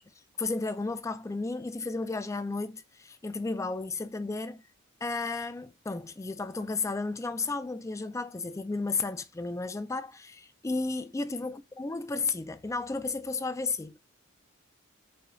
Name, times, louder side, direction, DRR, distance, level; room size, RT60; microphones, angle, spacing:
voice 1, 0.4-4.6 5.0-14.0, left 3 dB, 15° left, 0.3 m, -33 dB
4.8 x 2.8 x 2.6 m
head